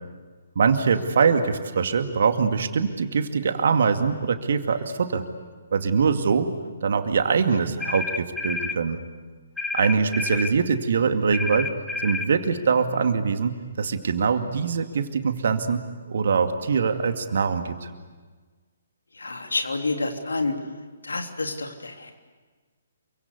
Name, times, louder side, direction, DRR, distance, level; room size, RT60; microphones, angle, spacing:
voice 1, 0.6-5.2 5.7-6.5 6.8-9.0 9.7-11.7 12.0-15.8 16.1-17.9, right 5 dB, 55° right, 7 dB, 2.3 m, -23 dB
sound 1, 7.8-8.8 9.6-10.6 11.3-12.3, left 3 dB, 5° left, 1.0 m, -30 dB
voice 2, 19.2-20.5 21.0-22.1, left 3 dB, 70° left, 4 dB, 3.3 m, -28 dB
28.5 x 24.5 x 8.3 m, 1.4 s
figure-of-eight pair, 130°, 0 cm